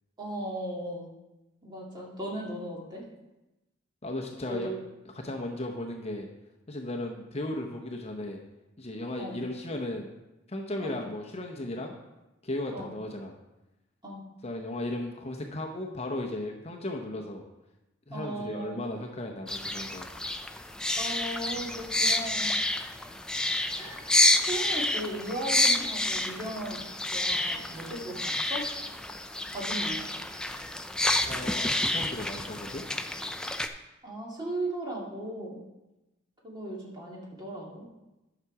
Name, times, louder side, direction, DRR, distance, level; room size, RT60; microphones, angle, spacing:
voice 1, 0.2-1.1 1.6-3.1 4.5-4.7 5.2-5.3 9.2-9.4 10.8-11.0 12.7-12.9 14.0-14.2 18.1-18.9 21.0-22.6 23.8-24.1 24.4-26.8 27.1-28.7 29.5-30.1 34.0-35.6 36.4-37.9, right 1 dB, 20° right, -3 dB, 2.1 m, -37 dB
voice 2, 4.0-4.7 5.1-6.3 6.7-8.4 8.8-10.1 10.5-12.0 12.4-13.3 14.4-17.5 18.1-20.1 31.3-32.8, left 1 dB, 30° left, 2 dB, 0.8 m, -35 dB
sound 1, 19.5-33.7, left 1 dB, 5° left, 0.4 m, -29 dB
9.7 x 6.0 x 4.8 m, 0.99 s
head